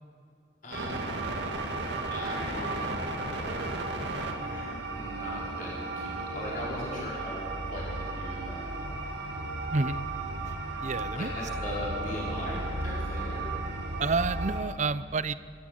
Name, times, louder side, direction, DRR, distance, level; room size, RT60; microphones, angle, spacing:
voice 1, 0.6-1.1 2.1-2.9 4.4-8.7 11.1-13.5, left 1 dB, 45° left, -6 dB, 5.1 m, -39 dB
sound 1, 0.7-14.6, right 2 dB, 60° right, 2.3 m, -34 dB
voice 2, 9.7-10.0 10.5-11.3 14.0-15.3, right 4 dB, 35° right, 14 dB, 0.6 m, -29 dB
29.0 x 12.5 x 7.8 m, 2.4 s
head